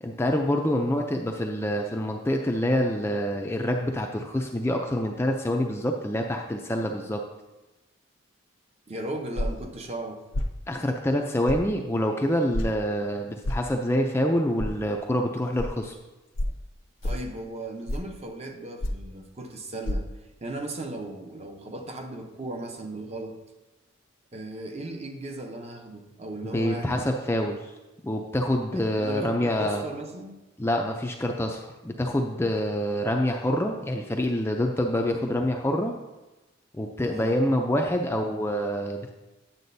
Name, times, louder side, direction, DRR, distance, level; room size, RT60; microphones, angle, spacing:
voice 1, 0.0-7.2 10.7-15.9 26.5-27.7 28.0-29.8 30.6-35.9 36.7-39.1, left 1 dB, 10° left, 2 dB, 0.4 m, -26 dB
voice 2, 8.9-10.2 17.0-20.1 20.4-23.4 24.3-27.1 28.7-30.4 37.1-37.4, right 2 dB, 30° right, 4 dB, 0.7 m, -37 dB
sound 1, 9.4-9.7 10.3-10.6 11.5-11.6 12.5-12.7 13.4-13.7 14.6-14.7 15.6-15.7 16.4-16.6 17.0-17.3 17.9-18.1 18.8-19.1 19.8-20.0, left 1 dB, 70° left, 0.6 m, -28 dB
9.4 x 7.3 x 2.7 m, 1.1 s
head